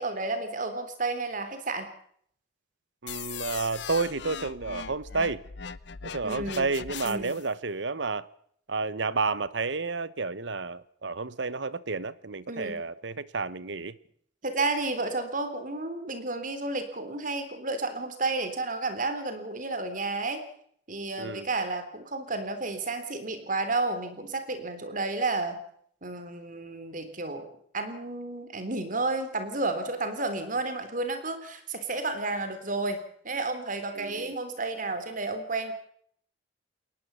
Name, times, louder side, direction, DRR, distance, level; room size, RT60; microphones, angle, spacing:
voice 1, 0.0-1.9 6.2-6.7 7.0-7.4 12.5-12.8 14.4-20.4 20.9-25.6 26.0-35.7, right 3 dB, 45° right, 3.5 m, -31 dB
voice 2, 3.0-5.4 6.1-8.3 8.7-14.0 21.2-21.4 34.0-34.3, right 4 dB, 70° right, 1.1 m, -31 dB
sound 1, 3.1-7.5, left 7 dB, 65° left, 0.8 m, -40 dB
21.5 x 19.5 x 7.0 m
head